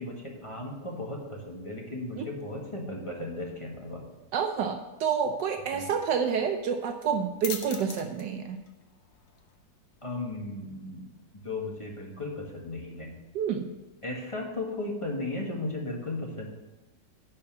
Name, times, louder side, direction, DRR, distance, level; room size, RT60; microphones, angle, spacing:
voice 1, 0.0-4.0 5.7-5.8 10.0-11.1 11.4-13.2 14.0-16.5, left 2 dB, 20° left, -1 dB, 1.5 m, -36 dB
voice 2, 4.3-8.6 13.3-13.7, right 7 dB, 75° right, 5 dB, 1.3 m, -29 dB
sound 1, 6.8-14.1, left 7 dB, 85° left, 1.7 m, -47 dB
10.5 x 4.3 x 7.3 m, 1.1 s
omnidirectional pair, 1.9 m